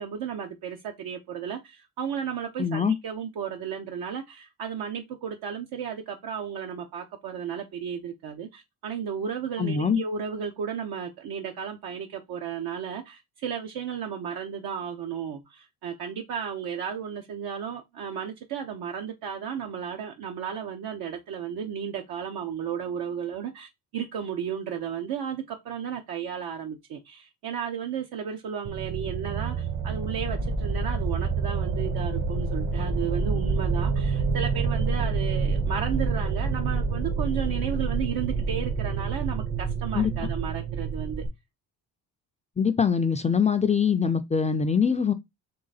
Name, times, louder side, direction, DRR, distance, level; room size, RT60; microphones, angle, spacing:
voice 1, 0.0-41.2, right 8 dB, 70° right, 0.8 m, -34 dB
voice 2, 2.6-2.9 9.6-10.0 39.9-40.3 42.6-45.1, left 6 dB, 20° left, 0.4 m, -23 dB
sound 1, 28.6-41.3, right 4 dB, 55° right, 1.2 m, -28 dB
3.9 x 3.3 x 3.9 m
cardioid pair, 110°, 38 cm